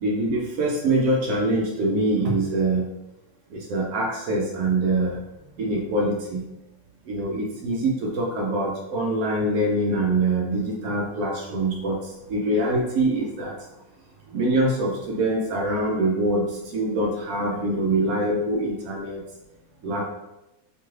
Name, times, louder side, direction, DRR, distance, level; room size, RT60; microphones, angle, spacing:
voice 1, 0.0-2.8 3.5-5.2 5.6-6.4 7.1-13.6 14.3-19.2 19.8-20.1, right 2 dB, 85° right, -1 dB, 1.1 m, -24 dB
3.1 x 2.9 x 2.4 m, 0.93 s
omnidirectional pair, 1.5 m